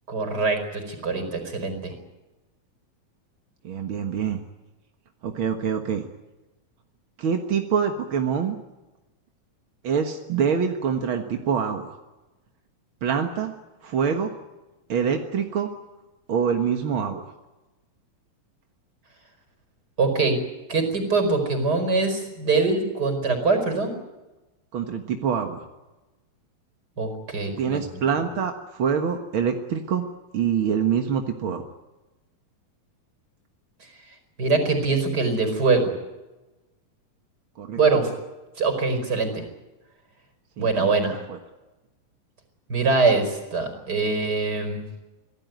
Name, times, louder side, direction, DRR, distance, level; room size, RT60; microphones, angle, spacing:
voice 1, 0.1-1.9 20.0-20.4 20.7-23.9 27.0-27.8 34.4-35.9 37.8-38.1 38.6-39.4 40.6-41.2 42.7-44.8, right 3 dB, 25° right, 8 dB, 5.1 m, -23 dB
voice 2, 3.6-4.4 5.2-6.0 7.2-8.6 9.8-12.0 13.0-13.5 13.8-14.3 14.9-15.7 16.3-17.2 24.7-25.7 27.6-30.1 30.3-31.6 37.6-37.8 40.6-40.9 41.3-41.4, right 7 dB, 50° right, 4 dB, 1.6 m, -25 dB
25.5 x 17.0 x 9.3 m, 1.1 s
omnidirectional pair, 4.1 m